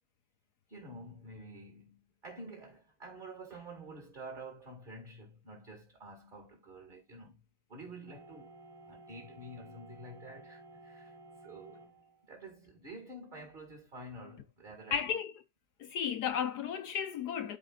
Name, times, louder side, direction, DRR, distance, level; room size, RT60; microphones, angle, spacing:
voice 1, 0.7-7.4 7.7-8.5 8.9-11.9 12.3-15.0, right 1 dB, 25° right, 2.1 m, -49 dB
sound 1, 8.1-12.3, right 2 dB, 60° right, 3.3 m, -54 dB
voice 2, 14.9-15.3 15.8-17.6, left 8 dB, 65° left, 1.2 m, -34 dB
13.0 x 4.8 x 2.4 m
omnidirectional pair, 2.0 m